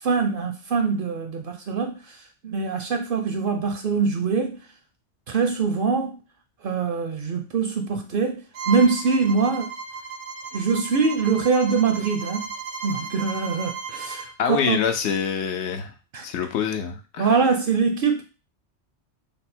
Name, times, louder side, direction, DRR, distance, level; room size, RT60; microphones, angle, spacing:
voice 1, 0.0-2.2 2.4-4.6 5.3-6.2 6.6-9.7 10.5-12.5 12.8-14.8 16.1-16.3 17.2-18.2, right 5 dB, 60° right, 5 dB, 0.6 m, -23 dB
Bowed string instrument, 8.5-14.3, right 5 dB, 80° right, 1.0 m, -35 dB
voice 2, 14.4-15.9 16.2-17.3, left 7 dB, 70° left, 6 dB, 0.8 m, -25 dB
3.4 x 2.2 x 4.2 m, 0.32 s
omnidirectional pair, 1.2 m